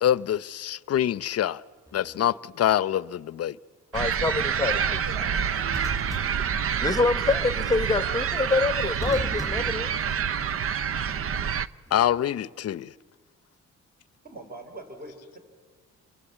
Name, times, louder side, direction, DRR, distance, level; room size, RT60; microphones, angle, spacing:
voice 1, 0.0-1.6 1.9-3.6 11.9-12.9, left 11 dB, 55° left, 0.7 m, -25 dB
sound 1, 1.9-2.2 5.7-7.2 9.0-10.7 11.9-12.2, equal, 10° right, 6.5 m, -39 dB
voice 2, 3.9-4.8 5.9-6.0 6.8-9.9, left 3 dB, 10° left, 1.2 m, -26 dB
sound 2, 3.9-11.7, right 7 dB, 50° right, 0.8 m, -27 dB
voice 3, 4.7-5.7 14.2-15.4, right 2 dB, 30° right, 5.4 m, -42 dB
28.5 x 23.5 x 8.2 m
cardioid pair, 90°, 30 cm